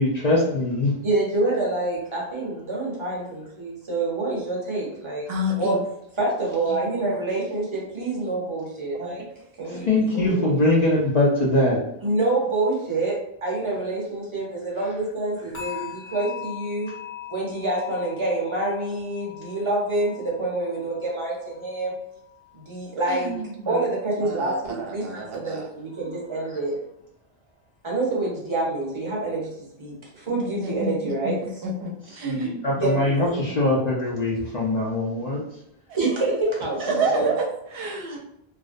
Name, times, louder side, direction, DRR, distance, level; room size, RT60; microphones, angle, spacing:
voice 1, 0.0-0.9 9.6-11.8 15.7-15.9 32.1-35.4 38.1-38.2, left 2 dB, 55° left, -4 dB, 0.5 m, -22 dB
voice 2, 1.0-5.8 6.2-9.2 9.6-10.5 11.0-11.1 12.0-16.9 17.3-22.0 22.5-23.4 23.7-26.8 27.8-29.5 29.8-31.4 32.8-33.4 36.0-37.3, right 2 dB, 35° right, -4 dB, 0.7 m, -27 dB
voice 3, 5.3-5.8 9.0-9.1 23.1-23.8 24.2-25.6 30.5-31.3 31.6-32.6 36.7-38.2, right 1 dB, 70° right, 0 dB, 0.7 m, -29 dB
sound 1, 15.5-22.6 22.9-23.3 23.8-23.9, left 9 dB, 80° left, 1.0 m, -41 dB
2.4 x 2.0 x 2.5 m, 0.79 s
omnidirectional pair, 1.0 m